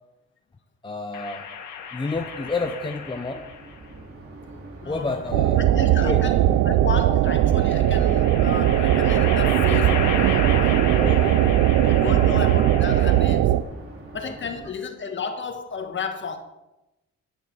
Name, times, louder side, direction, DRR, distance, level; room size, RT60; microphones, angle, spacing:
voice 1, 0.8-1.5 1.9-3.4 4.9-5.6 6.0-6.2 11.0-12.3 14.2-14.3, left 3 dB, 15° left, 0.7 m, -30 dB
sound 1, 1.1-3.8 4.9-5.9 7.5-13.5, left 7 dB, 85° left, 1.8 m, -34 dB
sound 2, 2.2-14.7, right 2 dB, 50° right, 2.8 m, -43 dB
voice 2, 4.8-11.6 11.9-13.6 14.1-16.4, left 5 dB, 40° left, 1.5 m, -33 dB
sound 3, 5.3-13.6, right 12 dB, 80° right, 0.6 m, -19 dB
10.5 x 9.0 x 4.8 m
cardioid pair, 90°, 30 cm